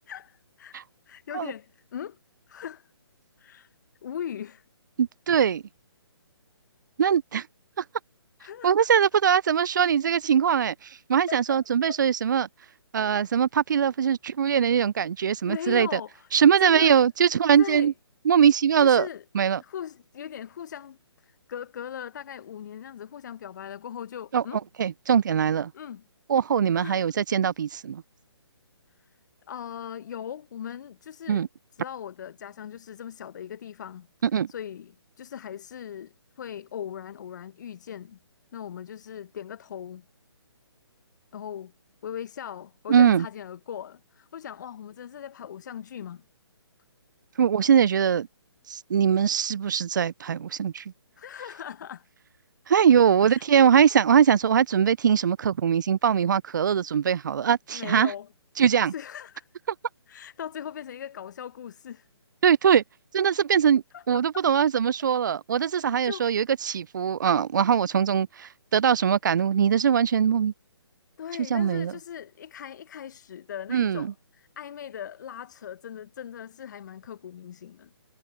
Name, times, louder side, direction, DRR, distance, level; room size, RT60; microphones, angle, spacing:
voice 1, 0.1-0.8 1.1-2.2 2.5-2.9 3.4-3.7 4.0-4.6 8.4-8.9 11.3-11.6 11.9-12.0 15.5-16.3 16.6-17.0 17.6-17.9 18.8-19.2 19.6-24.6 25.7-26.0 26.7-27.0 29.5-31.5 31.8-34.1 34.5-38.2 38.5-40.1 41.3-41.7 42.0-46.2 51.2-52.1 53.2-53.7 57.7-58.3 58.9-59.5 60.1-62.1 63.9-64.6 65.8-66.3 71.2-77.9, left 9 dB, 40° left, 0.8 m, -39 dB
voice 2, 5.0-5.6 7.0-7.5 8.6-12.5 12.9-16.0 16.3-17.9 18.3-19.1 19.3-19.6 24.3-24.4 24.8-25.7 26.3-28.0 31.3-31.5 34.2-34.5 42.9-43.3 47.4-48.3 48.7-50.8 52.7-58.1 58.6-58.9 62.4-62.8 63.1-70.5 71.5-71.9 73.7-74.1, right 8 dB, 45° right, 0.4 m, -22 dB
figure-of-eight pair, 140°, 14 cm